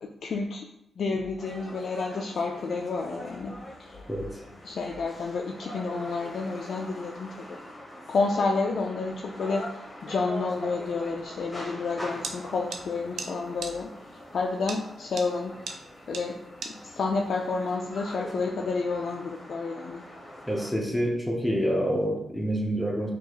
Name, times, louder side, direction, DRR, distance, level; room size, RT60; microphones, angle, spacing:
voice 1, 0.0-0.7 1.0-3.5 3.8-4.0 4.6-7.6 8.1-9.6 10.0-13.9 14.3-15.5 16.1-16.4 16.8-20.0, left 4 dB, 70° left, 1 dB, 0.3 m, -30 dB
sound 1, 1.4-20.7, equal, 25° left, 1.0 m, -43 dB
sound 2, 12.2-12.4 12.7-12.8 13.2-13.3 13.6-13.7 14.7-14.8 15.2-15.3 15.7-15.8 16.1-16.2 16.6-16.7, right 4 dB, 80° right, 0.4 m, -34 dB
voice 2, 20.5-23.1, equal, 5° left, -1 dB, 0.7 m, -27 dB
4.5 x 2.4 x 2.9 m, 0.81 s
cardioid pair, 65°, 0 cm